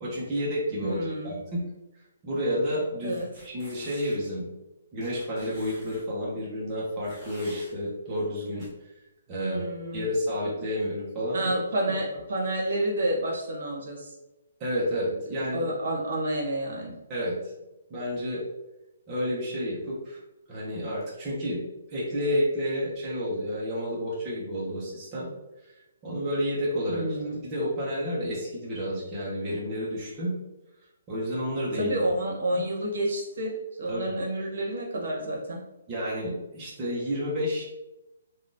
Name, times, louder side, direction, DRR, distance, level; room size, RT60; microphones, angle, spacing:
voice 1, 0.0-1.6 2.2-4.5 4.9-8.7 9.3-9.6 9.9-11.5 14.6-15.7 17.1-17.3 17.9-18.4 19.1-20.2 20.5-21.6 21.9-25.3 26.0-30.3 31.1-32.0 32.5-32.6 33.9-34.1 35.9-37.6, equal, 20° right, -7 dB, 0.7 m, -30 dB
voice 2, 0.8-1.3 3.0-3.3 9.4-10.1 11.3-14.1 15.3-16.9 26.9-27.4 31.8-35.6, right 1 dB, 65° right, -2 dB, 0.9 m, -29 dB
sound 1, 3.1-4.3 5.0-6.0 7.0-7.7 8.6-8.7, equal, ahead, 1.3 m, -48 dB
3.4 x 2.3 x 2.6 m, 0.96 s
hypercardioid pair, 170°, 0 cm